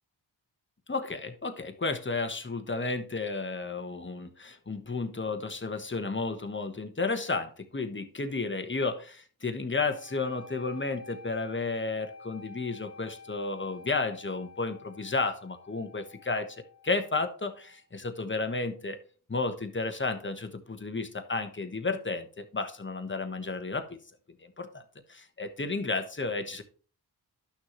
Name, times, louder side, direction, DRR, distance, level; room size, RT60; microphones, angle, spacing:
voice 1, 0.9-16.6 16.8-19.0 19.3-24.0 24.4-24.8 25.1-26.6, left 3 dB, 25° left, 7 dB, 1.2 m, -32 dB
sound 1, 9.8-17.8, left 3 dB, 10° right, 2.4 m, -50 dB
11.5 x 6.3 x 3.1 m, 0.41 s
cardioid pair, 50°, 42 cm